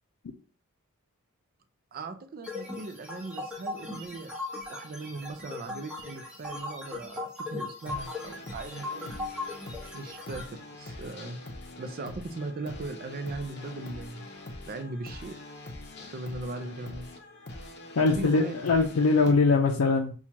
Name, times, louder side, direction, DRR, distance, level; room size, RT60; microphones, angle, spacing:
voice 1, 1.9-4.3 4.7-9.1 9.9-11.4 11.8-14.3 14.7-15.4 16.1-17.1 18.0-18.5, right 3 dB, 45° right, 9 dB, 0.4 m, -38 dB
sound 1, 2.4-10.4, left 2 dB, 5° right, 1.0 m, -38 dB
Epic intro guitar -, 7.9-19.3, left 2 dB, 55° left, 0.7 m, -44 dB
voice 2, 18.0-20.1, left 4 dB, 85° left, 0 dB, 0.5 m, -22 dB
5.9 x 2.3 x 2.8 m, 0.40 s
head